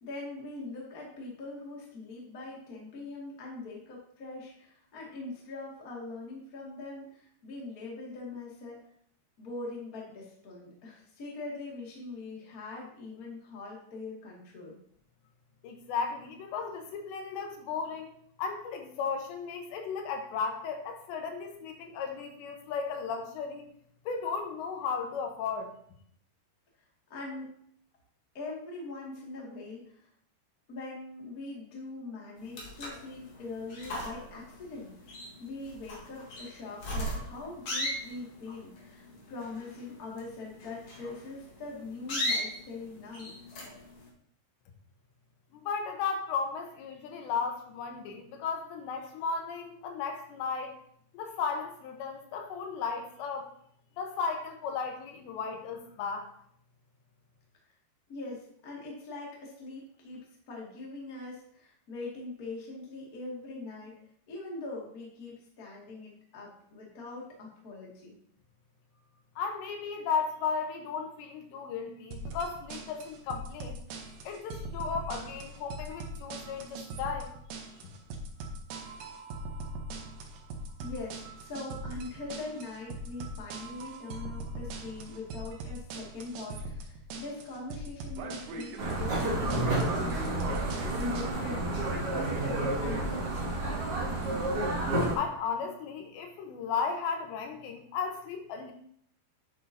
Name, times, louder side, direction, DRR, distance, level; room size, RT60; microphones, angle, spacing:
voice 1, 0.0-8.8 9.4-14.8 27.1-27.5 28.3-30.1 30.7-35.0 35.4-43.3 58.1-64.0 64.3-68.1 80.8-93.4, left 3 dB, 35° left, -3 dB, 1.5 m, -42 dB
voice 2, 15.6-18.1 18.4-23.7 24.1-25.7 45.5-50.7 51.1-53.5 54.0-56.3 69.4-73.8 74.3-77.3 95.2-98.7, left 5 dB, 80° left, 4 dB, 3.2 m, -35 dB
sound 1, 32.4-44.1, left 1 dB, 55° left, 1.7 m, -38 dB
sound 2, 72.1-91.3, right 2 dB, 75° right, 2.1 m, -41 dB
sound 3, 88.8-95.1, right 2 dB, 40° right, 2.3 m, -30 dB
9.2 x 8.2 x 2.8 m, 0.66 s
omnidirectional pair, 5.1 m